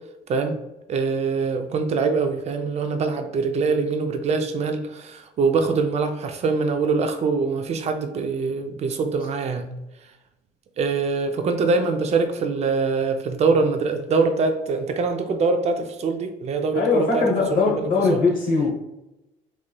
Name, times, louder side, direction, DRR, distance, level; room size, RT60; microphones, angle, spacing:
voice 1, 0.9-9.7 10.8-18.2, right 4 dB, 40° right, 7 dB, 0.4 m, -23 dB
voice 2, 16.7-18.7, left 4 dB, 55° left, -1 dB, 0.8 m, -21 dB
3.0 x 2.9 x 2.2 m, 0.95 s
cardioid pair, 110°, 17 cm